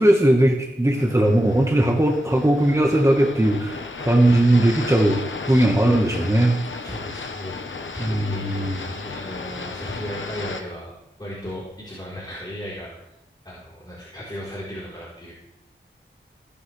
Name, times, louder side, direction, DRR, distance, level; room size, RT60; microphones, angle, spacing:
voice 1, 0.0-6.6 8.0-8.9, right 1 dB, 15° right, 1 dB, 1.4 m, -19 dB
sound 1, 0.9-10.6, left 4 dB, 75° left, 1.1 m, -35 dB
voice 2, 6.8-10.9 11.2-13.1 13.4-15.3, equal, 20° left, -8 dB, 3.9 m, -36 dB
16.0 x 10.0 x 3.4 m, 0.87 s
wide cardioid pair, 70°, 20 cm